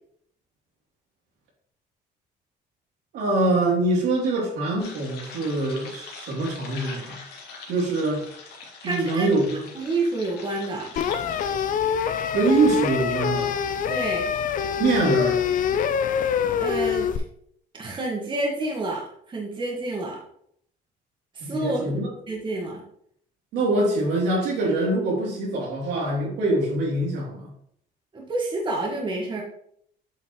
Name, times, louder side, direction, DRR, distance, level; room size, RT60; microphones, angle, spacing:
voice 1, 3.1-7.2 7.7-8.2 8.8-9.6 12.3-13.5 14.8-15.4 21.4-22.1 23.5-27.5, right 2 dB, 80° right, -3 dB, 3.0 m, -24 dB
sound 1, 4.8-11.4, left 4 dB, 80° left, 2.1 m, -42 dB
voice 2, 8.8-9.3 9.7-10.9 13.9-14.3 16.6-17.1 17.7-20.2 21.3-22.8 28.1-29.4, right 2 dB, 30° right, -1 dB, 1.6 m, -29 dB
sound 2, 11.0-17.2, left 8 dB, 55° left, 0.6 m, -25 dB
7.9 x 5.7 x 3.1 m, 0.68 s
cardioid pair, 110°, 17 cm